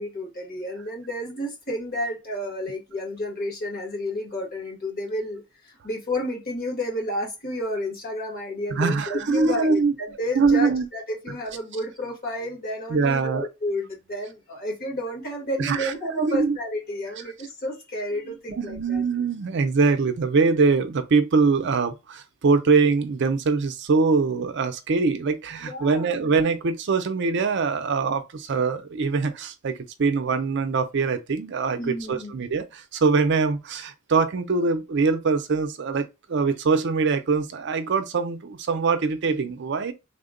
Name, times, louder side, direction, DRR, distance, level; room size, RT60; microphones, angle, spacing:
voice 1, 0.0-19.0 25.6-26.3 31.8-32.3, left 1 dB, 45° left, 1.6 m, -31 dB
voice 2, 8.7-9.9 10.3-10.9 12.9-13.5 15.6-16.6 18.3-39.9, right 4 dB, 60° right, 0.5 m, -23 dB
3.5 x 2.2 x 3.7 m
head